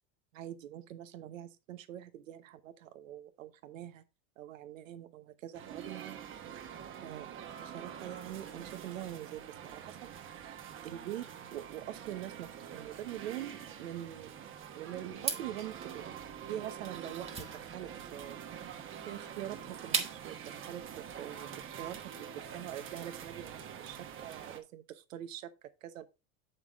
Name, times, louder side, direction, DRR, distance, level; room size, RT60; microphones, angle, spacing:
voice 1, 0.3-4.0 4.4-6.2 7.0-7.3 7.6-10.1 10.4-14.3 14.7-16.1 16.5-18.8 19.1-21.5 21.8-26.1, right 12 dB, 80° right, 1.0 m, -44 dB
sound 1, 5.5-24.6, right 8 dB, 30° right, 1.1 m, -46 dB
sound 2, 15.1-20.4, right 4 dB, 15° right, 1.4 m, -39 dB
7.3 x 5.7 x 3.5 m
hypercardioid pair, 110°, 38 cm